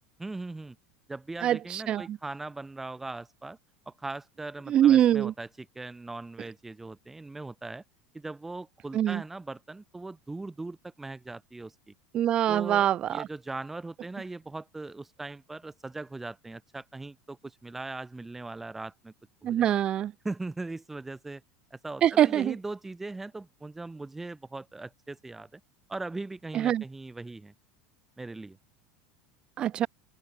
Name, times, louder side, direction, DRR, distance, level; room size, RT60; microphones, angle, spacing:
voice 1, 0.2-0.8 1.1-3.6 3.9-7.8 8.1-11.7 12.5-19.1 19.4-19.7 20.2-21.4 21.7-25.6 25.9-27.5 28.2-28.6, right 2 dB, 10° right, 2.8 m, -39 dB
voice 2, 1.4-2.2 4.7-5.3 8.9-9.2 12.1-13.3 19.4-20.1 22.0-22.5 26.5-26.8 29.6-29.9, right 11 dB, 35° right, 0.4 m, -24 dB
open air
supercardioid pair, 125°, 3 cm